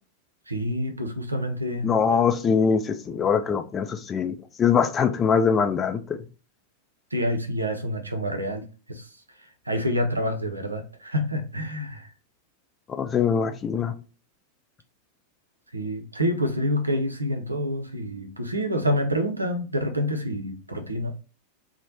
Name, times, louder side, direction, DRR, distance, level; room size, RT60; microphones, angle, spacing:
voice 1, 0.5-1.9 7.1-9.1 9.7-12.1 15.7-21.1, equal, 80° right, 0.6 m, -27 dB
voice 2, 1.8-6.0 13.0-13.9, left 6 dB, 20° left, 0.4 m, -23 dB
3.1 x 2.1 x 4.0 m
figure-of-eight pair, 90°, 0 cm